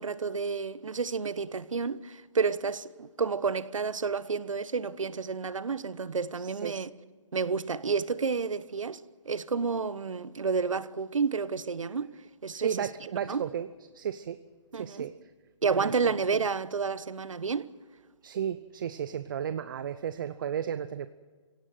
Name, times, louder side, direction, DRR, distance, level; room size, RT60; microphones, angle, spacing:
voice 1, 0.0-6.9 7.3-9.0 9.2-12.1 12.4-12.9 13.2-13.4 14.7-15.1 15.6-17.7, right 5 dB, 90° right, 1.1 m, -30 dB
voice 2, 6.4-6.8 12.5-13.7 13.9-14.4 14.7-15.1 15.7-16.4 18.2-21.1, right 9 dB, 40° right, 0.7 m, -34 dB
27.0 x 17.0 x 7.7 m
hypercardioid pair, 160°, 16 cm